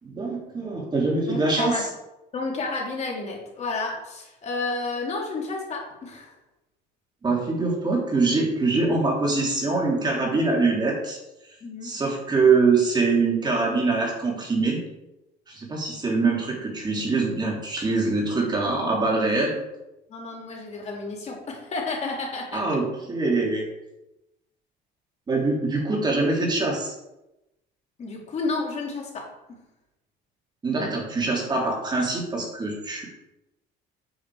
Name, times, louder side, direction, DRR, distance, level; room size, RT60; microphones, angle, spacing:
voice 1, 0.0-1.9 7.2-11.2 11.8-14.8 15.5-19.6 22.5-23.7 25.3-26.9 30.6-33.1, right 3 dB, 20° right, -2 dB, 3.0 m, -24 dB
voice 2, 1.3-1.9 2.3-6.3 11.6-11.9 20.1-22.8 28.0-29.2 29.5-29.6, left 3 dB, 35° left, -2 dB, 3.0 m, -31 dB
9.2 x 8.5 x 4.9 m, 0.93 s
cardioid pair, 140°, 19 cm